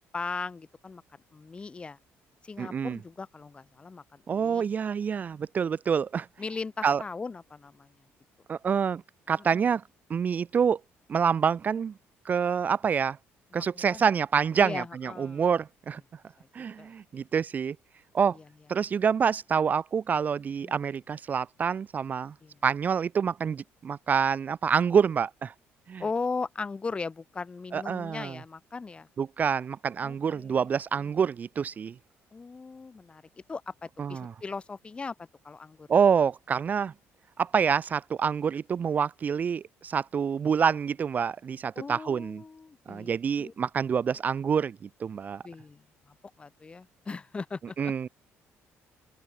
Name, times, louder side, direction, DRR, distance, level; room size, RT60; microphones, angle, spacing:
voice 1, 0.1-1.0 1.3-2.0 2.4-4.7 6.4-7.9 9.5-9.7 13.5-14.0 14.6-15.4 16.4-16.5 16.8-17.2 18.3-18.4 20.6-20.8 22.4-22.6 26.0-29.1 30.0-30.7 31.0-31.1 32.3-33.2 33.5-35.9 41.8-43.1 43.4-43.5 45.4-47.9, left 4 dB, 20° left, 5.7 m, -38 dB
voice 2, 2.6-3.0 4.3-6.3 6.8-7.0 8.5-9.0 9.3-9.8 10.1-10.8 11.1-11.9 12.2-13.2 13.5-16.0 16.5-17.8 18.1-18.4 18.7-22.3 22.6-25.5 25.9-26.0 27.7-28.4 29.2-31.9 34.0-34.3 35.9-36.9 37.4-42.4 42.9-45.4 47.8-48.1, right 7 dB, 35° right, 0.7 m, -27 dB
open air
cardioid pair, 130°, 5 cm